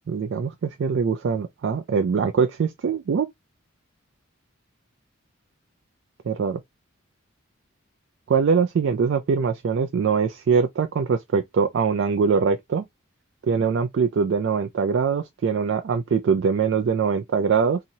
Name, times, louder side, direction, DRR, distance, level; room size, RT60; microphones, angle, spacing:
voice 1, 0.1-3.3 6.3-6.6 8.3-12.8 13.5-17.8, right 5 dB, 60° right, 0.3 m, -22 dB
2.8 x 2.7 x 2.7 m
head